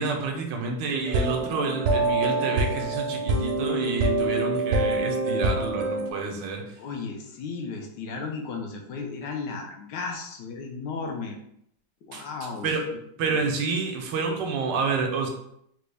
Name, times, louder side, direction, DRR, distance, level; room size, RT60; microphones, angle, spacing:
voice 1, 0.0-6.6 12.1-12.9 13.2-15.3, right 4 dB, 85° right, 2 dB, 1.4 m, -29 dB
sound 1, 1.0-6.1, right 2 dB, 70° right, 1.1 m, -25 dB
voice 2, 6.8-11.4 12.0-12.7 13.2-13.5, left 4 dB, 80° left, 1 dB, 1.3 m, -35 dB
3.9 x 2.2 x 3.3 m, 0.73 s
omnidirectional pair, 1.9 m